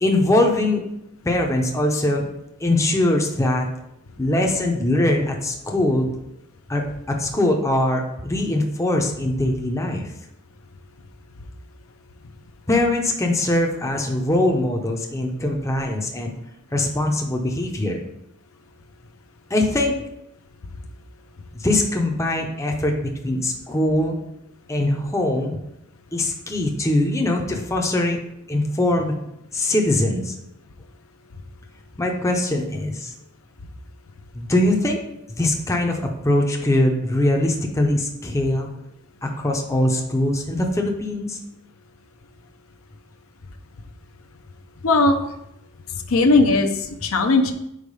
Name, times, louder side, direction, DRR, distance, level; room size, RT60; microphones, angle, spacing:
voice 1, 0.0-0.8 1.2-2.2 2.6-3.7 4.2-6.1 6.7-10.1 12.7-16.3 16.7-18.0 19.5-19.9 21.5-24.2 24.7-25.6 26.1-28.2 28.5-29.1 29.5-30.4 32.0-33.1 34.3-35.0 35.4-38.7 39.2-41.4, left 1 dB, 15° left, 1 dB, 0.6 m, -22 dB
voice 2, 44.8-45.2 46.1-47.5, left 3 dB, 65° left, 5 dB, 0.6 m, -18 dB
4.9 x 4.5 x 5.4 m, 0.84 s
head